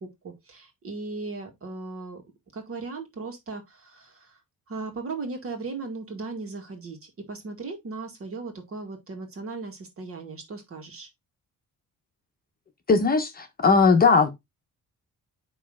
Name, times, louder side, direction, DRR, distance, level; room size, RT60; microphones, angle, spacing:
voice 1, 0.0-2.2 2.5-4.4 4.7-11.1, right 3 dB, 45° right, 2.0 m, -37 dB
voice 2, 12.9-14.3, left 4 dB, 30° left, 1.0 m, -19 dB
9.3 x 3.2 x 3.7 m
cardioid pair, 155°, 32 cm